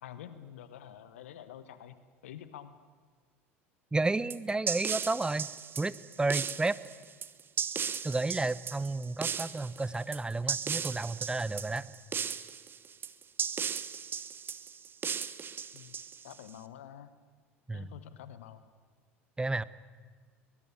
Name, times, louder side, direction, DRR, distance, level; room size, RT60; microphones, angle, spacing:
voice 1, 0.0-2.0 2.2-2.8 15.7-16.0 16.2-17.1 17.7-18.6, left 10 dB, 75° left, 12 dB, 1.3 m, -48 dB
voice 2, 3.9-5.5 5.8-6.8 8.0-11.9 17.7-17.9 19.4-19.6, right 3 dB, 10° right, 18 dB, 0.8 m, -31 dB
sound 1, 4.3-16.5, right 7 dB, 30° right, 1.2 m, -36 dB
22.5 x 20.5 x 9.8 m, 1.5 s
figure-of-eight pair, 75°, 7 cm